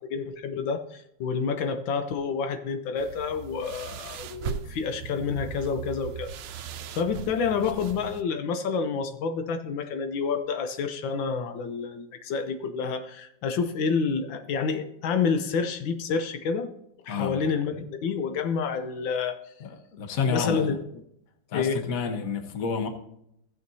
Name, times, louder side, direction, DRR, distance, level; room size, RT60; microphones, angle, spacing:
voice 1, 0.1-6.3 6.9-16.7 17.1-19.4 20.3-20.7 21.5-21.8, left 5 dB, 85° left, 8 dB, 1.6 m, -28 dB
sound 1, 3.0-8.2, right 7 dB, 75° right, 1.2 m, -38 dB
voice 2, 19.6-20.7 21.5-22.9, left 5 dB, 55° left, 6 dB, 1.4 m, -29 dB
15.5 x 7.6 x 2.7 m, 0.76 s
omnidirectional pair, 2.0 m